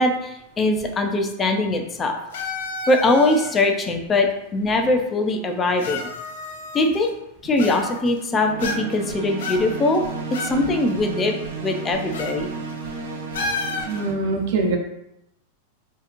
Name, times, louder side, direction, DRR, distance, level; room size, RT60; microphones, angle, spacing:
voice 1, 0.0-2.2 2.9-6.0 6.7-7.1 7.4-10.0 10.4-12.5, left 2 dB, 20° left, 4 dB, 0.5 m, -21 dB
sound 1, 2.3-3.7 4.6-4.7 5.8-7.1 7.6-8.2 8.6-9.1 9.4-10.6 10.9-11.0 12.1-12.4 12.7-12.9 13.3-14.0, left 3 dB, 75° left, 0.7 m, -31 dB
sound 2, 8.3-14.1, right 4 dB, 90° right, 0.9 m, -33 dB
voice 2, 13.5-14.8, right 3 dB, 60° right, 2 dB, 0.9 m, -24 dB
4.8 x 2.9 x 2.6 m, 0.84 s
supercardioid pair, 135°, 0 cm